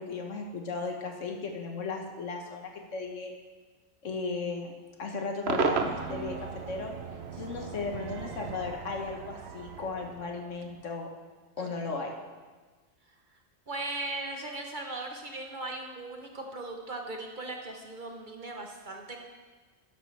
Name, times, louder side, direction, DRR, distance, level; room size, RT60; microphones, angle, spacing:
voice 1, 0.0-3.3 4.0-4.7 5.0-6.9 7.3-11.1 11.6-12.1, left 4 dB, 75° left, 2 dB, 1.6 m, -36 dB
Cheering / Crowd / Fireworks, 5.5-10.7, right 5 dB, 60° right, 1.0 m, -35 dB
voice 2, 11.6-11.9 13.7-19.2, right 2 dB, 40° right, 2 dB, 1.2 m, -38 dB
12.5 x 10.5 x 3.4 m, 1.4 s
omnidirectional pair, 1.3 m